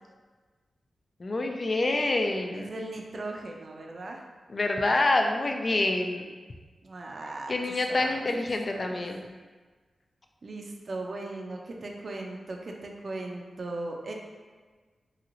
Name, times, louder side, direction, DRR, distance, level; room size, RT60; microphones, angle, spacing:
voice 1, 1.2-2.7 4.5-6.2 7.5-9.2, left 2 dB, 50° left, 3 dB, 0.3 m, -27 dB
voice 2, 2.5-4.2 6.8-7.5 7.9-8.3 8.7-9.0 10.4-14.1, right 2 dB, 60° right, 1 dB, 0.4 m, -38 dB
3.0 x 2.8 x 2.5 m, 1.4 s
cardioid pair, 45°, 0 cm